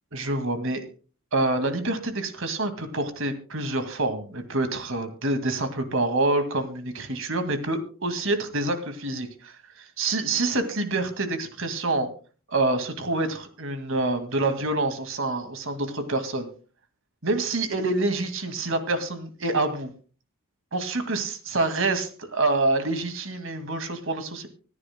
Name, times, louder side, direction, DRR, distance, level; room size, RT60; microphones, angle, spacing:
voice 1, 0.1-0.9 1.3-12.1 12.5-16.5 17.2-19.9 20.7-24.5, right 2 dB, 60° right, 8 dB, 2.1 m, -27 dB
25.5 x 9.7 x 2.2 m, 0.37 s
head